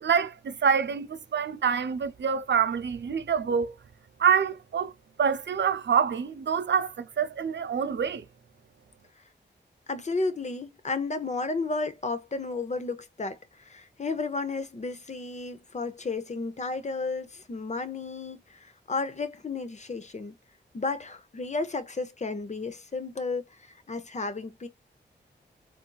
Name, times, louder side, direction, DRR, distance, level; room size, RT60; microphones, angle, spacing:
voice 1, 0.0-3.8 4.2-4.9 5.2-8.3, right 7 dB, 70° right, 0.5 m, -26 dB
voice 2, 9.9-20.4 20.7-24.7, left 3 dB, 35° left, 0.6 m, -33 dB
3.5 x 2.7 x 2.3 m
cardioid pair, 55°, 19 cm